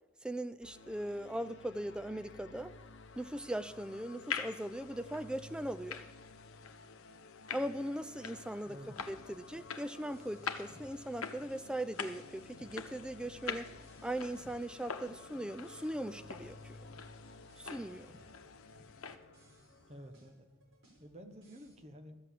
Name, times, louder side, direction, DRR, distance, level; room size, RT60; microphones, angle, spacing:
voice 1, 0.2-2.8 3.2-6.0 7.5-8.8 9.1-13.7 14.0-16.8 17.6-18.1, right 1 dB, 5° right, 10 dB, 0.4 m, -39 dB
sound 1, 0.6-20.1, left 3 dB, 55° left, 0.8 m, -55 dB
sound 2, 3.1-19.2, left 6 dB, 85° left, 1.0 m, -46 dB
voice 2, 8.6-9.1 19.9-20.5 21.0-22.2, equal, 30° right, 6 dB, 1.1 m, -51 dB
sound 3, 8.8-21.7, equal, 65° right, 4.9 m, -63 dB
13.0 x 8.0 x 7.5 m, 1.0 s
head